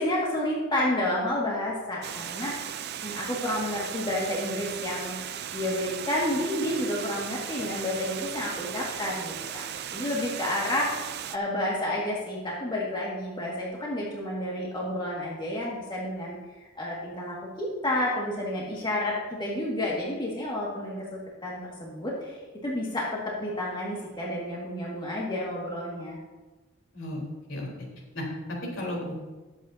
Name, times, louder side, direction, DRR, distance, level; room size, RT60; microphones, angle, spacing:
voice 1, 0.0-2.5 3.0-5.1 5.5-10.9 11.3-16.4 16.8-22.4 22.6-26.2, left 1 dB, 25° left, -5 dB, 2.1 m, -30 dB
Water, 2.0-11.4, right 9 dB, 55° right, 0.5 m, -37 dB
voice 2, 28.1-29.1, left 1 dB, 70° left, -2 dB, 4.1 m, -33 dB
20.5 x 8.3 x 2.8 m, 1.2 s
head